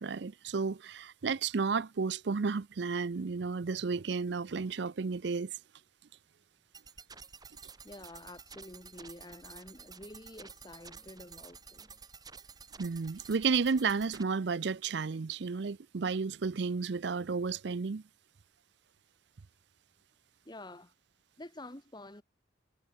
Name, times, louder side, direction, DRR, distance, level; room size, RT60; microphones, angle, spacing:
voice 1, 0.0-5.6 12.8-18.0, right 5 dB, 60° right, 0.5 m, -32 dB
sound 1, 6.7-14.2, right 5 dB, 20° right, 2.2 m, -51 dB
voice 2, 7.8-12.1 20.5-20.9 21.4-22.2, left 1 dB, 20° left, 1.9 m, -49 dB
head